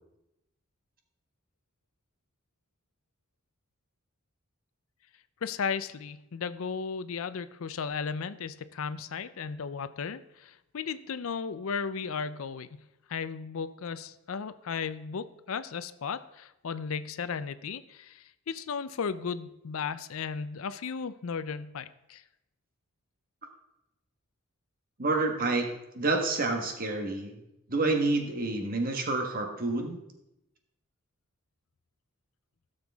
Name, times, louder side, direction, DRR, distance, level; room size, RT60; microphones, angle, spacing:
voice 1, 5.4-12.8 13.1-22.2, left 6 dB, 70° left, 14 dB, 0.5 m, -35 dB
voice 2, 25.0-25.7 25.9-27.3 27.7-30.0, right 3 dB, 40° right, 3 dB, 1.3 m, -28 dB
16.0 x 6.7 x 3.5 m, 0.88 s
head